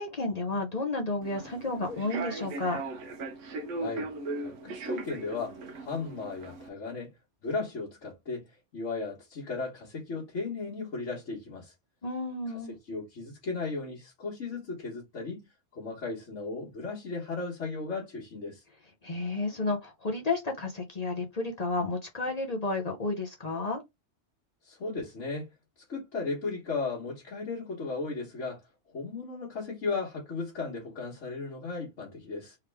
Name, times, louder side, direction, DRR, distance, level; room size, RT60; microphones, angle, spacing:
voice 1, 0.0-2.8 12.0-12.7 19.0-23.8, left 2 dB, 40° left, 0.8 m, -31 dB
Human voice / Subway metro underground, 1.2-6.7, right 2 dB, 85° right, 1.1 m, -38 dB
voice 2, 3.8-4.1 4.4-7.2 7.4-11.7 12.7-15.5 15.7-18.6 24.6-25.5 25.9-28.6 28.9-32.6, left 4 dB, 75° left, 1.6 m, -36 dB
3.6 x 3.1 x 3.3 m
omnidirectional pair, 1.2 m